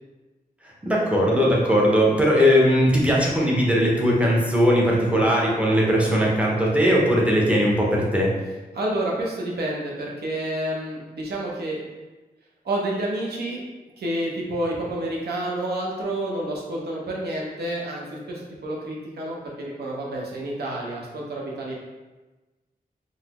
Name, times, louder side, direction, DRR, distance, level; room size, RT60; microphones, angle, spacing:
voice 1, 0.6-8.3, equal, 10° right, -4 dB, 0.5 m, -19 dB
voice 2, 8.7-11.8 12.6-13.6 14.0-21.7, right 1 dB, 85° right, -3 dB, 0.7 m, -29 dB
3.8 x 2.0 x 2.9 m, 1.2 s
wide cardioid pair, 170°, 16 cm